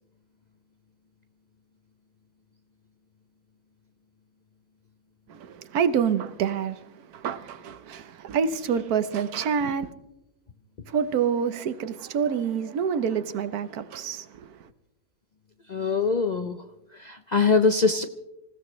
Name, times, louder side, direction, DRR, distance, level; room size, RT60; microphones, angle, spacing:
voice 1, 5.3-6.8 7.1-9.9 10.9-14.5, right 7 dB, 85° right, 1.4 m, -27 dB
voice 2, 15.7-16.6 17.0-18.0, left 4 dB, 50° left, 0.5 m, -22 dB
26.5 x 16.0 x 3.2 m
omnidirectional pair, 1.6 m